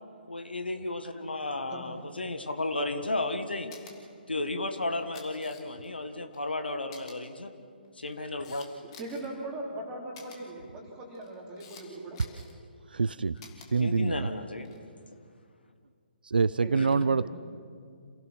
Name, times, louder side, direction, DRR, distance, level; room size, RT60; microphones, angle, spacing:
voice 1, 0.3-3.7 4.3-7.5 7.9-8.7 13.8-14.7 16.8-16.9, left 2 dB, 70° left, 7 dB, 1.7 m, -33 dB
Camera, 3.7-3.9 4.9-5.9 6.3-6.4 6.9-7.1 7.8-9.3 10.1-10.4 11.1-11.8 12.1-12.5 13.4-13.7 14.5-14.8, left 5 dB, 30° left, 2.7 m, -50 dB
voice 2, 9.0-12.2 16.6-17.2, right 1 dB, 15° right, -2 dB, 3.8 m, -40 dB
voice 3, 12.9-13.3 13.7-14.3 16.2-17.3, right 4 dB, 65° right, 17 dB, 0.5 m, -25 dB
28.0 x 17.5 x 6.1 m, 2.2 s
figure-of-eight pair, 135°, 6 cm